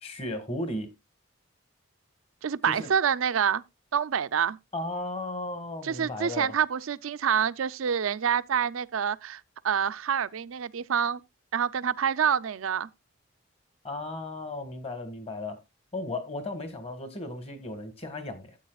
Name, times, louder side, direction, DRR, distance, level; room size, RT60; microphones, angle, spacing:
voice 1, 0.0-0.9 2.7-2.9 4.7-6.6 13.8-15.6 15.9-18.6, left 2 dB, 30° left, 1.6 m, -35 dB
voice 2, 2.4-3.6 3.9-4.6 5.8-11.2 11.5-12.9, right 7 dB, 75° right, 0.5 m, -27 dB
14.0 x 8.6 x 2.3 m
head